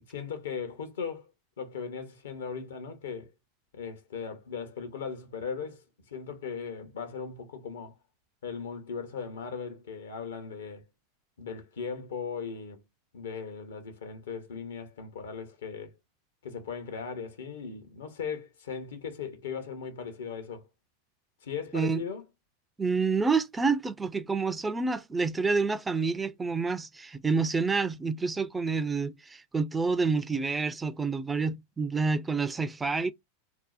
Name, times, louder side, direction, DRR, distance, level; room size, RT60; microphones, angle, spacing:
voice 1, 0.1-1.3 1.6-3.3 3.7-8.0 8.4-10.8 11.4-12.8 13.1-15.9 16.4-20.6 21.4-22.2, left 6 dB, 80° left, 0.8 m, -38 dB
voice 2, 22.8-33.1, right 4 dB, 15° right, 0.3 m, -28 dB
2.6 x 2.0 x 2.3 m
hypercardioid pair, 100°, 0 cm